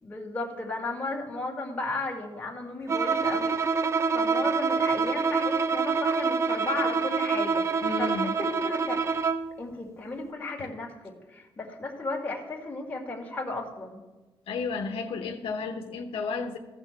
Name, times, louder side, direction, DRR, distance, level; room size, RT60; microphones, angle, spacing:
voice 1, 0.0-9.0 9.6-10.9 11.3-14.0, left 2 dB, 15° left, -2 dB, 2.1 m, -35 dB
Bowed string instrument, 2.9-9.5, right 5 dB, 30° right, 0.5 m, -26 dB
voice 2, 7.8-8.4 10.6-10.7 14.5-16.6, left 4 dB, 75° left, 3 dB, 1.0 m, -32 dB
15.5 x 6.3 x 4.5 m, 1.2 s
cardioid pair, 150°, 10 cm